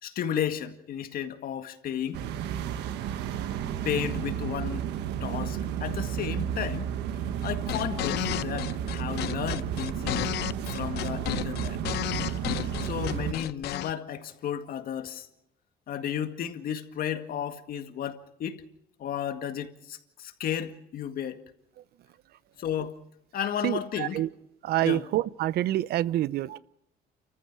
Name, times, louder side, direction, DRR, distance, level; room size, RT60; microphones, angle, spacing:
voice 1, 0.0-2.2 3.8-4.9 5.2-6.9 7.4-10.3 10.7-11.8 12.8-15.3 15.9-18.6 19.0-21.4 22.6-23.0 23.3-24.2 24.8-25.0, left 9 dB, 60° left, 2.0 m, -33 dB
sound 1, 2.1-13.3, right 9 dB, 85° right, 1.5 m, -32 dB
sound 2, 7.4-13.9, left 15 dB, 75° left, 0.7 m, -32 dB
voice 2, 23.6-24.3 24.6-26.6, right 14 dB, 70° right, 0.8 m, -27 dB
30.0 x 14.5 x 6.2 m
cardioid pair, 110°, 17 cm